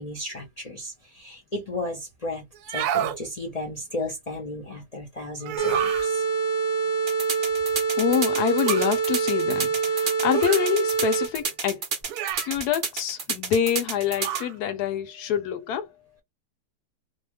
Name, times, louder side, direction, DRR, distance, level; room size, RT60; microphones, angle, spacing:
voice 1, 0.0-6.2, left 1 dB, 45° left, 0.4 m, -34 dB
sound 1, 2.6-3.2 5.4-6.1 8.6-9.0 10.3-10.7 12.1-12.6 14.2-14.5, right 10 dB, 75° right, 1.0 m, -29 dB
sound 2, 5.6-11.5, right 5 dB, 5° left, 0.7 m, -25 dB
sound 3, 7.1-14.4, right 5 dB, 55° right, 0.6 m, -30 dB
voice 2, 8.0-11.8 12.4-15.8, left 9 dB, 75° left, 1.1 m, -26 dB
2.7 x 2.0 x 3.2 m
omnidirectional pair, 1.8 m